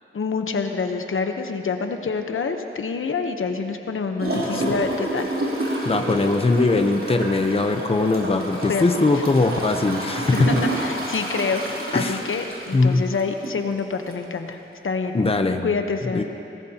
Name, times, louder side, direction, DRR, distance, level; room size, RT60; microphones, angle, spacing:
voice 1, 0.1-5.6 8.7-9.2 10.3-14.6 14.8-15.2 15.6-16.2, left 4 dB, 80° left, 5 dB, 0.9 m, -27 dB
Gurgling / Toilet flush, 4.2-13.6 14.1-14.2, right 1 dB, 90° right, 3.1 m, -29 dB
voice 2, 4.4-4.8 5.8-10.6 11.9-12.2 12.7-13.0 15.1-15.7 16.1-16.2, left 3 dB, 30° left, 6 dB, 0.7 m, -21 dB
22.0 x 18.5 x 2.9 m, 2.8 s
wide cardioid pair, 110°, 21 cm